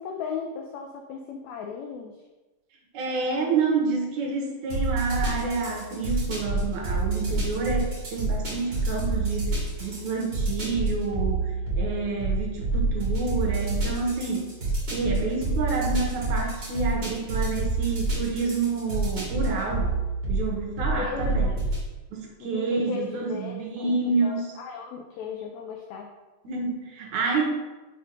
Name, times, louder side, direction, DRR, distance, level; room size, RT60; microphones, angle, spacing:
voice 1, 0.0-2.2 21.0-21.6 22.4-26.1, left 6 dB, 85° left, 3 dB, 1.6 m, -36 dB
voice 2, 2.9-14.5 14.9-20.0 20.3-21.5 22.1-24.5 26.4-27.5, right 4 dB, 70° right, 0 dB, 2.2 m, -28 dB
sound 1, 4.7-21.8, right 2 dB, 35° right, 2.2 m, -28 dB
5.8 x 4.4 x 5.0 m, 1.2 s
omnidirectional pair, 3.8 m